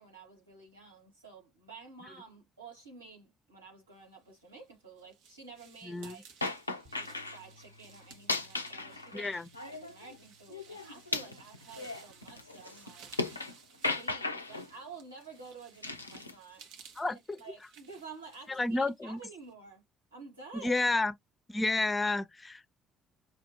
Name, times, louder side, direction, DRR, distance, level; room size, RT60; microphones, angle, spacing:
voice 1, 0.0-6.2 6.9-13.1 13.8-16.7 17.1-19.8 20.1-20.8, right 4 dB, 85° right, 1.7 m, -51 dB
sound 1, 4.4-19.5, right 7 dB, 65° right, 0.9 m, -58 dB
voice 2, 5.8-6.2 9.1-9.5 17.0-17.2 18.5-19.2 20.6-21.1 21.5-22.7, left 2 dB, 20° left, 0.7 m, -30 dB
sound 2, 6.4-7.4 8.1-10.2 10.5-13.5 13.8-14.7 15.8-16.3, left 3 dB, 85° left, 0.4 m, -36 dB
sound 3, 6.8-13.1, left 1 dB, 50° right, 1.2 m, -64 dB
5.6 x 2.6 x 2.8 m
figure-of-eight pair, 50°, 0 cm